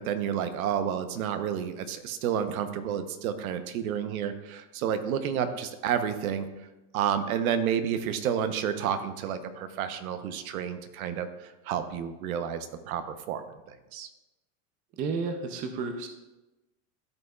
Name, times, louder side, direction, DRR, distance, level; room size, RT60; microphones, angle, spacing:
voice 1, 0.0-6.5 6.9-14.1, right 8 dB, 75° right, 10 dB, 0.9 m, -30 dB
voice 2, 15.0-16.1, right 4 dB, 20° right, 6 dB, 0.4 m, -31 dB
13.5 x 5.4 x 2.3 m, 1.0 s
supercardioid pair, 150°, 43 cm